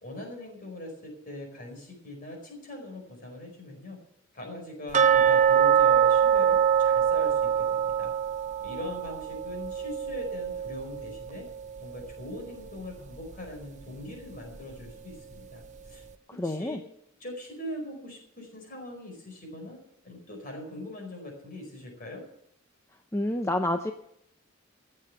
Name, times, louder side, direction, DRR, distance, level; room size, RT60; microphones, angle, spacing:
voice 1, 0.0-4.0 4.3-8.1 8.6-11.4 11.8-15.6 15.9-16.0 16.4-16.8 17.2-19.8 20.0-22.2, left 1 dB, 40° left, 2 dB, 4.9 m, -41 dB
sound 1, 4.9-11.8 12.1-12.2 12.7-12.8 13.3-13.4, right 8 dB, 35° right, 0.7 m, -24 dB
voice 2, 16.4-16.8 23.1-23.9, left 1 dB, 15° left, 6 dB, 0.6 m, -28 dB
14.5 x 7.7 x 7.9 m, 0.72 s
head